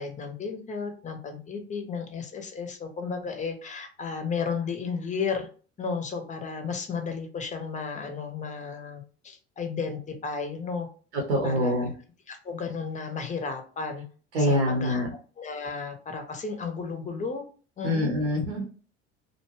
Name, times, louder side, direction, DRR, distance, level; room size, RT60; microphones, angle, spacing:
voice 1, 0.0-5.5 5.8-10.9 11.4-11.9 12.3-14.1 14.4-15.0 15.4-17.4 17.8-18.2, left 5 dB, 20° left, 6 dB, 0.7 m, -33 dB
voice 2, 11.1-11.9 14.3-15.1 17.8-18.6, equal, 70° right, -1 dB, 0.9 m, -25 dB
2.5 x 2.2 x 3.1 m, 0.40 s
figure-of-eight pair, 70°, 34 cm